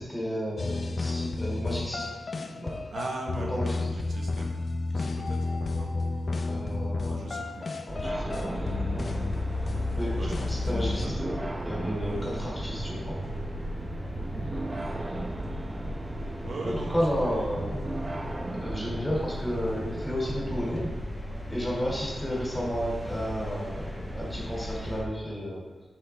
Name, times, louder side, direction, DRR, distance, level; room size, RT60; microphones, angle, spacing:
voice 1, 0.0-2.1 2.3-2.8 3.5-4.1 6.5-7.4 7.9-9.1 10.0-13.2 16.6-17.9 18.6-20.9 21.5-25.6, equal, 15° left, -4 dB, 2.9 m, -32 dB
sound 1, 0.6-11.1, left 3 dB, 45° left, 0.6 m, -31 dB
voice 2, 2.9-4.5 4.9-5.4 5.8-5.9 7.0-7.8 10.1-11.1 12.0-12.5 14.7-15.0 16.4-17.5, right 2 dB, 70° right, 0 dB, 1.2 m, -39 dB
sound 2, 7.9-25.0, equal, ahead, 1.8 m, -37 dB
sound 3, 8.0-20.9, right 2 dB, 30° right, 0.9 m, -36 dB
11.5 x 6.0 x 3.6 m, 1.2 s
wide cardioid pair, 135°, 0 cm